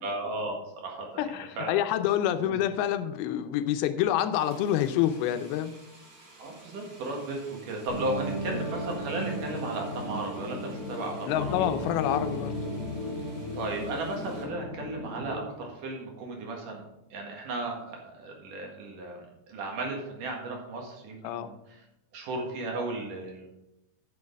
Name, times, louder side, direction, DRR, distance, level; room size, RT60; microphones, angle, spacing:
voice 1, 0.0-1.1 1.6-1.7 2.4-2.5 6.4-11.5 13.5-16.8 17.1-21.8 22.1-23.5, right 2 dB, 65° right, 1 dB, 3.1 m, -35 dB
voice 2, 1.2-5.8 11.3-12.6 21.2-21.5, left 11 dB, 85° left, 10 dB, 2.6 m, -27 dB
sound 1, 4.3-14.5, right 2 dB, 50° right, 1.1 m, -53 dB
sound 2, 7.9-15.5, left 1 dB, 50° left, 1.8 m, -35 dB
9.5 x 6.4 x 5.3 m, 0.88 s
omnidirectional pair, 4.3 m